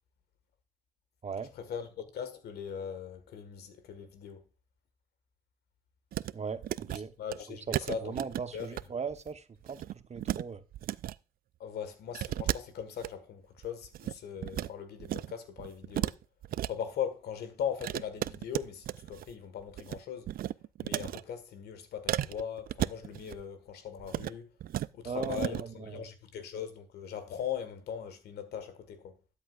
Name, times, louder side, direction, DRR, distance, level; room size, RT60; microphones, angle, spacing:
voice 1, 1.5-4.4 6.9-8.1 8.5-8.8 11.6-16.2 16.7-20.3 20.8-24.5 24.9-29.2, left 8 dB, 75° left, 1.7 m, -40 dB
sound 1, 6.1-6.3 6.6-7.0 7.3-7.4 7.7-8.8 9.1-9.3 9.6-10.4 10.7-11.2 12.1-13.1 13.6-14.7 15.0-15.3 15.6-16.7 17.8-19.3 19.6-20.0 20.3-21.2 22.1-23.4 24.0-24.3 24.6-24.9 25.2-25.6, right 13 dB, 60° right, 0.4 m, -34 dB
voice 2, 6.3-7.1 7.7-10.6 25.0-26.0, right 5 dB, 40° right, 1.1 m, -38 dB
13.0 x 8.8 x 2.5 m
hypercardioid pair, 45°, 17 cm